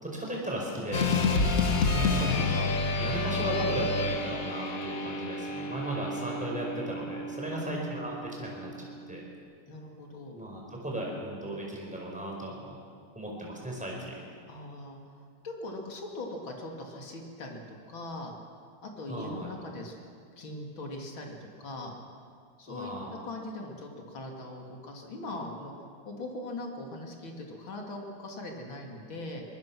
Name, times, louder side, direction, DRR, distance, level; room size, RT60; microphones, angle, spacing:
voice 1, 0.0-1.1 1.9-2.7 3.0-9.2 10.3-12.7 13.1-14.2 19.1-19.5 22.7-23.1, right 1 dB, 5° right, -2 dB, 4.8 m, -36 dB
sound 1, 0.9-9.3, left 3 dB, 45° left, 1.7 m, -30 dB
voice 2, 7.5-8.0 9.7-10.3 14.5-18.3 18.8-19.9 20.4-21.9 22.6-29.4, left 2 dB, 65° left, 1 dB, 3.4 m, -41 dB
24.0 x 20.0 x 6.2 m, 2.2 s
omnidirectional pair, 2.4 m